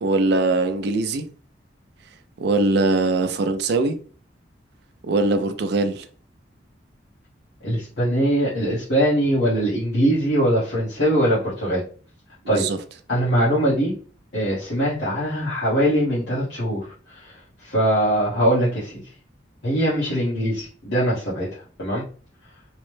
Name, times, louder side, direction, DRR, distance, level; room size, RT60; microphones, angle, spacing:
voice 1, 0.0-1.3 2.4-4.0 5.0-6.1 12.4-12.8, right 2 dB, 60° right, 0.4 m, -21 dB
voice 2, 7.6-11.8 12.5-12.6 13.1-13.9 14.3-16.9 17.2-17.3 17.6-19.0 19.6-22.0, equal, 75° left, 1.1 m, -22 dB
3.0 x 2.1 x 3.1 m
head